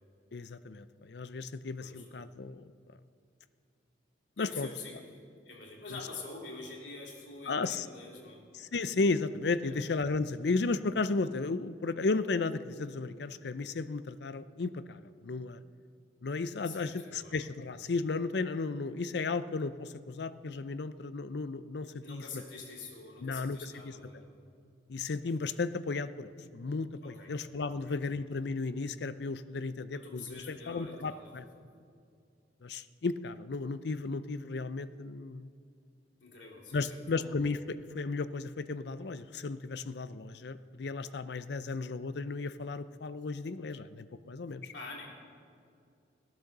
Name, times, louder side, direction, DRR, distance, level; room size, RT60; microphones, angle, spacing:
voice 1, 0.3-2.7 4.4-4.7 7.5-7.9 8.6-15.6 16.2-22.4 23.2-23.9 24.9-31.4 32.6-35.5 36.7-44.7, left 3 dB, 65° left, 13 dB, 0.5 m, -34 dB
voice 2, 4.4-5.0 5.4-8.5 9.6-9.8 16.6-17.4 22.0-24.4 27.0-27.3 27.7-28.0 29.9-31.3 36.2-37.3 44.7-45.1, left 3 dB, 80° left, -2 dB, 3.0 m, -46 dB
15.5 x 10.5 x 6.7 m, 2.3 s
head